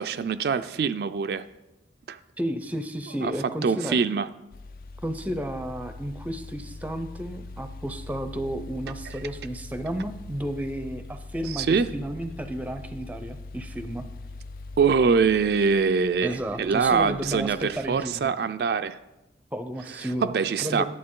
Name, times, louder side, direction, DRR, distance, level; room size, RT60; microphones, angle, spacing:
voice 1, 0.0-1.4 2.1-2.2 3.2-3.3 3.6-4.3 9.1-9.2 11.5-11.9 14.8-19.0 20.0-20.8, right 5 dB, 65° right, 10 dB, 0.3 m, -24 dB
voice 2, 2.4-4.0 5.0-14.1 16.2-18.3 19.5-20.3 20.6-20.8, equal, 10° right, 9 dB, 0.5 m, -32 dB
sound 1, 4.5-18.3, left 3 dB, 50° left, 0.4 m, -42 dB
11.0 x 7.9 x 3.7 m, 0.97 s
head